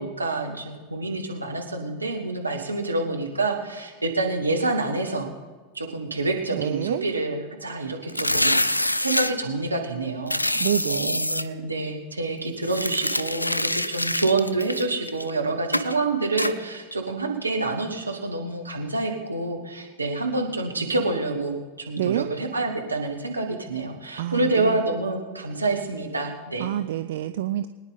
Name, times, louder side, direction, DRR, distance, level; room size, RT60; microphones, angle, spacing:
voice 1, 0.0-5.3 5.7-21.6 21.9-26.7, right 2 dB, 85° right, 1 dB, 1.9 m, -27 dB
voice 2, 6.5-7.0 10.6-11.3 22.0-22.3 24.2-24.8 26.6-27.7, right 12 dB, 60° right, 10 dB, 0.5 m, -27 dB
sound 1, 8.1-9.3 10.3-11.4 12.6-15.3 15.7-15.9 16.4-16.5, left 1 dB, 90° left, 0.4 m, -25 dB
22.5 x 9.8 x 4.1 m, 1.4 s
figure-of-eight pair, 90°, 0 cm